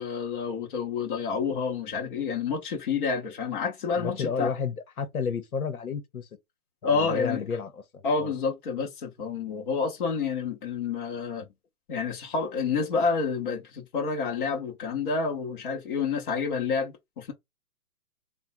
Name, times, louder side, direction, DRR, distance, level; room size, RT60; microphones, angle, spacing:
voice 1, 0.0-4.5 6.8-7.4 8.0-11.5 11.9-17.3, left 5 dB, 35° left, 1.1 m, -29 dB
voice 2, 4.0-6.3 6.9-8.3, left 6 dB, 75° left, 1.1 m, -32 dB
3.4 x 2.3 x 4.2 m
hypercardioid pair, 150°, 43 cm